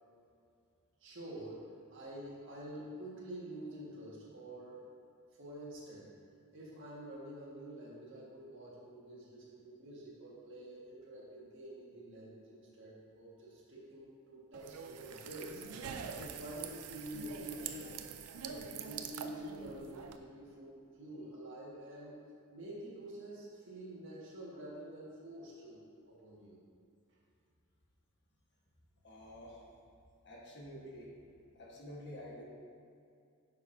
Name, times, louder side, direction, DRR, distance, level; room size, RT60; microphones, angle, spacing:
voice 1, 1.0-4.9 5.4-6.1 6.5-15.6 16.1-18.0 18.4-22.2 22.5-26.6, right 1 dB, 55° right, -5 dB, 1.7 m, -48 dB
sound 1, 14.5-20.2, right 6 dB, 85° right, 0.5 m, -45 dB
voice 2, 29.0-29.6 30.2-31.1 31.5-32.4, left 1 dB, 50° left, -4 dB, 1.4 m, -49 dB
9.5 x 6.2 x 2.7 m, 2.4 s
head